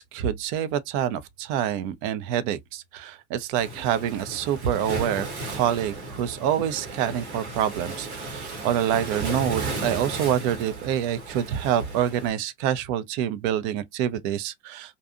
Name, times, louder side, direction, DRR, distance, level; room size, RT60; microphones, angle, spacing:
voice 1, 0.0-15.0, right 10 dB, 50° right, 0.5 m, -27 dB
Waves surf, 3.6-12.3, right 3 dB, 75° right, 1.1 m, -35 dB
2.6 x 2.3 x 2.4 m
figure-of-eight pair, 75°, 34 cm